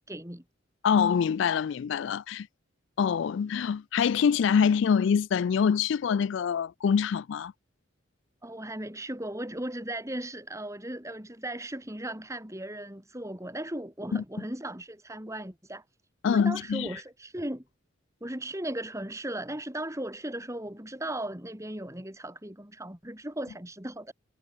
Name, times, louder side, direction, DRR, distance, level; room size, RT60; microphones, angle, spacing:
voice 1, 0.1-0.4 8.4-15.8 16.2-17.6 18.2-24.1, right 1 dB, 15° right, 3.4 m, -37 dB
voice 2, 0.8-2.5 3.0-7.5 14.1-14.2 16.2-16.9, left 7 dB, 60° left, 0.3 m, -25 dB
head